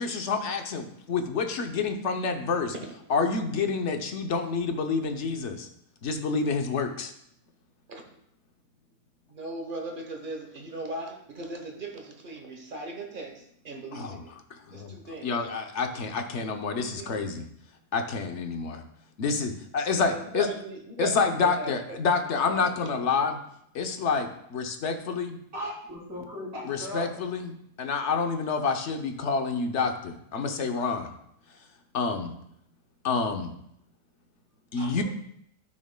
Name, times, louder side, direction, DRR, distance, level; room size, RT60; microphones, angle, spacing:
voice 1, 0.0-2.7 3.1-5.7 6.0-7.1 13.9-14.2 14.7-17.5 17.9-18.8 19.2-20.5 21.0-23.4 23.7-25.4 26.7-31.1 31.9-32.3 33.0-33.5 34.7-35.0, left 4 dB, 55° left, 6 dB, 0.9 m, -28 dB
voice 2, 9.3-14.3 14.7-15.3 16.8-17.2 19.9-22.0 22.2-22.9, right 2 dB, 35° right, 3 dB, 1.1 m, -38 dB
voice 3, 25.5-27.1 34.7-35.0, equal, 55° right, -6 dB, 3.3 m, -37 dB
12.5 x 6.2 x 2.2 m, 0.73 s
omnidirectional pair, 1.7 m